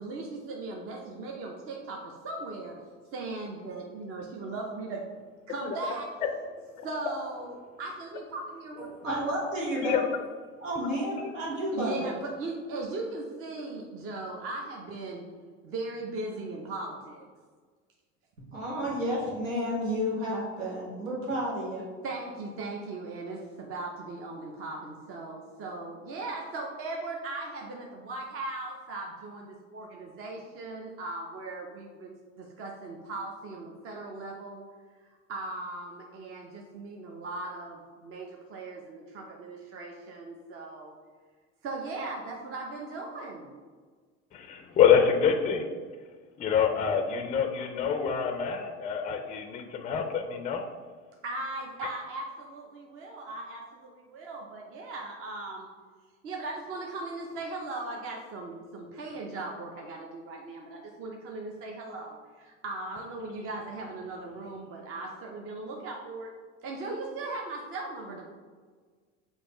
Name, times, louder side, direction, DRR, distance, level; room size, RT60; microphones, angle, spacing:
voice 1, 0.0-2.8 3.1-5.0 5.5-6.1 6.8-8.9 11.7-15.2 15.6-17.3 22.0-34.6 35.3-41.0 41.6-43.5 51.2-55.7 56.2-66.3 66.6-68.2, right 2 dB, 35° right, 0 dB, 0.7 m, -38 dB
voice 2, 9.0-10.0 10.6-12.1 18.5-21.8, equal, 90° right, -5 dB, 1.2 m, -31 dB
voice 3, 44.3-45.6 46.4-50.7, left 7 dB, 20° left, 6 dB, 0.4 m, -26 dB
5.9 x 2.6 x 3.0 m, 1.5 s
hypercardioid pair, 75°, 38 cm